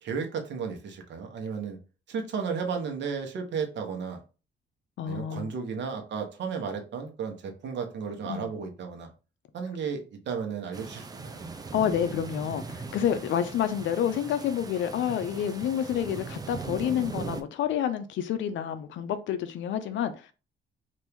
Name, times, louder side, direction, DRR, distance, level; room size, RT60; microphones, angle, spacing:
voice 1, 0.0-1.8 2.1-4.2 5.0-9.1 9.5-11.5, right 6 dB, 65° right, 0.9 m, -34 dB
voice 2, 5.0-5.5 8.3-8.5 11.7-20.3, left 9 dB, 70° left, 0.4 m, -29 dB
sound 1, 10.7-17.4, right 4 dB, 20° right, 0.4 m, -39 dB
2.9 x 2.6 x 3.4 m
cardioid pair, 90°, 20 cm